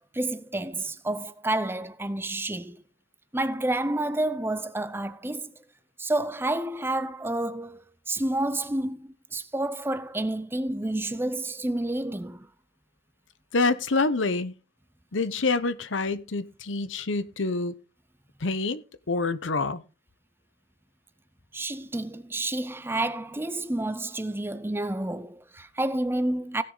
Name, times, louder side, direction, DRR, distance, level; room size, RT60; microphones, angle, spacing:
voice 1, 0.1-2.8 3.3-5.5 6.0-12.5 21.5-26.6, right 1 dB, 10° right, 0.6 m, -29 dB
voice 2, 13.5-14.5 15.1-17.7 18.4-19.8, left 3 dB, 80° left, 0.9 m, -27 dB
16.5 x 6.8 x 3.9 m
head